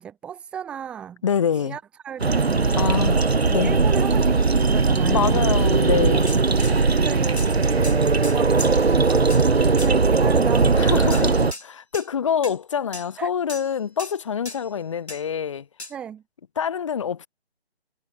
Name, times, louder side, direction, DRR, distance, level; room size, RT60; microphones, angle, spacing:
voice 1, 0.0-1.2 1.5-2.8 3.3-5.5 6.9-8.0 8.3-8.6 8.9-11.4 13.2-13.3 15.9-16.2, right 8 dB, 5° right, 1.1 m, -35 dB
voice 2, 1.2-1.8 2.7-3.8 5.0-6.3 10.8-15.6 16.6-17.3, left 7 dB, 30° left, 1.6 m, -26 dB
sound 1, 2.2-11.5, right 4 dB, 70° right, 1.3 m, -19 dB
sound 2, 6.3-6.8 7.4-7.5 7.8-8.7 9.3-9.4 9.8-9.9 11.1-11.7 11.9-12.1 12.4-12.6 12.9-13.1 13.5-13.7 14.0-14.2 14.5-14.7 15.1-15.2 15.8-15.9, left 2 dB, 80° left, 7.7 m, -37 dB
figure-of-eight pair, 155°, 32 cm